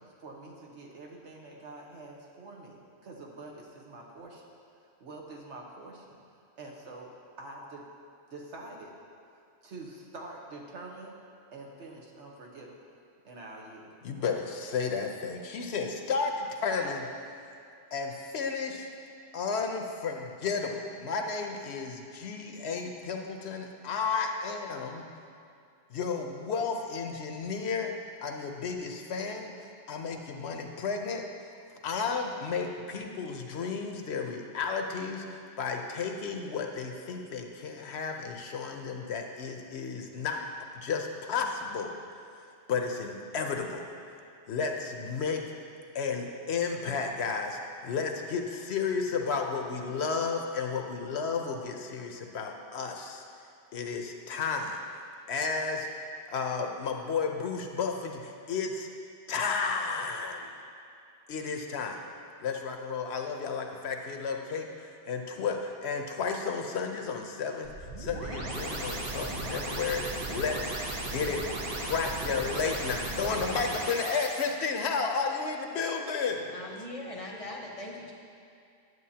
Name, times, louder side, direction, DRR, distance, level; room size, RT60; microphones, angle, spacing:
voice 1, 0.0-4.4 4.8-6.2 6.6-7.8 8.3-9.0 9.6-11.1 11.5-12.8 13.2-13.9, right 2 dB, 75° right, -2 dB, 1.4 m, -46 dB
voice 2, 14.0-17.1 17.9-18.9 19.3-25.0 25.9-27.9 28.2-31.2 31.8-40.4 40.7-41.9 42.7-43.8 44.5-45.4 45.9-53.2 53.7-54.8 55.3-55.9 56.3-58.9 59.3-60.5 61.3-62.0 62.4-70.7 71.0-71.4 71.8-76.5, left 5 dB, 70° left, 3 dB, 0.9 m, -32 dB
sound 1, 67.6-74.4, right 2 dB, 60° right, 1.1 m, -36 dB
voice 3, 76.5-78.1, left 1 dB, 35° left, -1 dB, 0.8 m, -40 dB
11.0 x 8.0 x 2.8 m, 2.5 s
omnidirectional pair, 1.2 m